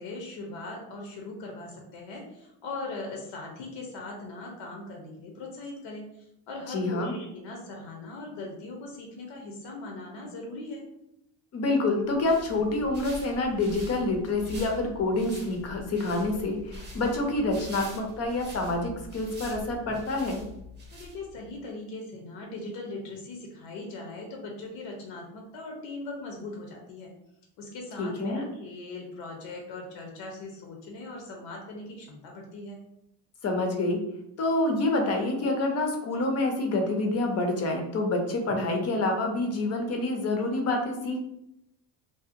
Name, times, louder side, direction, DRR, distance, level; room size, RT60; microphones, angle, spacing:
voice 1, 0.0-10.8 20.9-27.1 27.6-32.8, left 2 dB, 80° left, 1 dB, 0.7 m, -40 dB
voice 2, 6.7-7.1 11.5-20.4 28.0-28.5 33.4-34.0 34.4-41.2, left 2 dB, 35° left, 3 dB, 0.4 m, -27 dB
sound 1, 12.0-21.5, left 1 dB, 25° right, 0.6 m, -44 dB
2.7 x 2.1 x 2.4 m, 0.83 s
cardioid pair, 145°, 43 cm